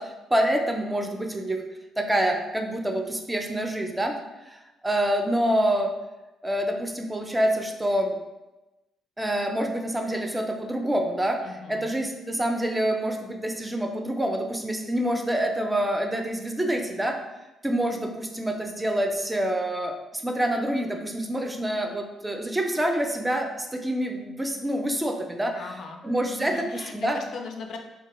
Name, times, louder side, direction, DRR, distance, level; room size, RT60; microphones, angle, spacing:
voice 1, 0.0-1.6 2.0-4.2 4.5-5.9 6.4-8.2 9.2-11.4 11.7-17.2 17.6-25.5 26.0-27.2, right 1 dB, 15° right, 3 dB, 0.3 m, -26 dB
voice 2, 11.4-12.0 25.5-26.0 26.5-27.8, left 4 dB, 65° left, 3 dB, 0.3 m, -39 dB
2.3 x 2.1 x 2.9 m, 1.0 s
cardioid pair, 90°, 0 cm